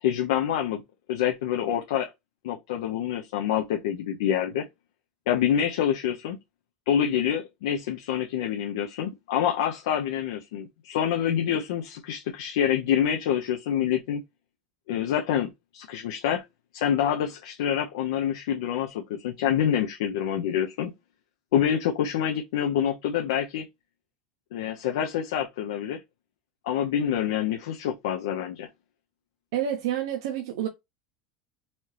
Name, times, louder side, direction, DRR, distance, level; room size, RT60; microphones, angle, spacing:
voice 1, 0.0-0.8 1.1-2.1 2.4-4.7 5.3-6.4 6.9-14.2 14.9-16.4 16.7-20.9 21.5-23.7 24.5-26.0 26.6-28.7, left 9 dB, 85° left, 0.7 m, -26 dB
voice 2, 29.5-30.7, right 10 dB, 80° right, 0.8 m, -28 dB
4.1 x 3.0 x 3.2 m
supercardioid pair, 150°, 2 cm